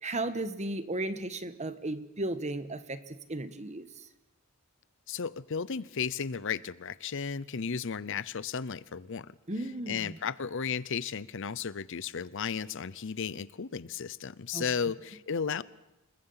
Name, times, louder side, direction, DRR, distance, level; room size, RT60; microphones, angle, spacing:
voice 1, 0.0-3.9 9.5-10.2 14.5-14.6, right 2 dB, 35° right, 1.4 m, -35 dB
voice 2, 5.1-9.3 9.9-15.6, left 6 dB, 65° left, 0.7 m, -34 dB
28.0 x 21.5 x 5.8 m
head